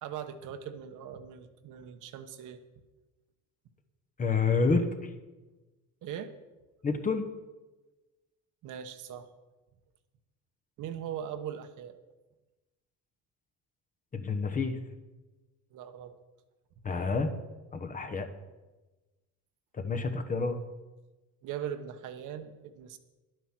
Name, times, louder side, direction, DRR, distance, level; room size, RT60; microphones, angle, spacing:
voice 1, 0.0-2.6 6.0-6.3 8.6-9.3 10.8-12.0 15.7-16.2 21.4-23.0, right 9 dB, 65° right, 8 dB, 1.1 m, -40 dB
voice 2, 4.2-4.9 6.8-7.3 14.1-14.8 16.8-17.3 17.7-18.3 19.8-20.6, left 4 dB, 25° left, 7 dB, 1.1 m, -28 dB
11.5 x 9.2 x 6.0 m, 1.1 s
cardioid pair, 135°, 33 cm